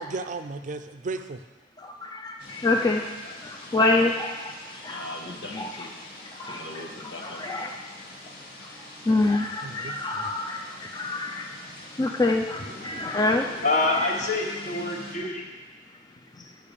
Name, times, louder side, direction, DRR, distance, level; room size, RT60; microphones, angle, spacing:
voice 1, 0.0-1.4 9.6-10.3, right 3 dB, 45° right, 9 dB, 0.4 m, -35 dB
voice 2, 2.1-3.0 3.7-4.3 4.8-5.0 6.4-6.6 7.2-7.7 9.1-11.5 12.0-13.5 13.9-14.1 14.9-15.0, left 2 dB, 25° left, 2 dB, 0.5 m, -25 dB
sound 1, 2.4-15.2, left 1 dB, 60° left, 1.9 m, -44 dB
voice 3, 4.9-6.0 6.4-7.5, left 2 dB, 80° left, 1 dB, 1.5 m, -40 dB
voice 4, 12.7-15.5, left 2 dB, 45° left, 1 dB, 1.2 m, -27 dB
8.8 x 5.7 x 6.8 m, 1.2 s
head